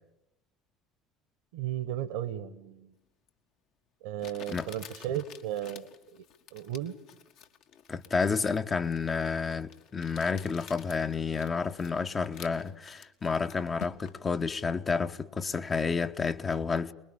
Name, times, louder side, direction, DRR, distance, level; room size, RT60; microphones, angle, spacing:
voice 1, 1.5-2.9 4.0-6.2 6.5-6.9, right 11 dB, 65° right, 1.5 m, -35 dB
Crumpling crinkling, 3.3-3.4 4.2-14.3, left 7 dB, 60° left, 1.9 m, -51 dB
voice 2, 7.9-16.9, left 5 dB, 30° left, 1.1 m, -30 dB
24.0 x 21.5 x 8.7 m
figure-of-eight pair, 60°, 0 cm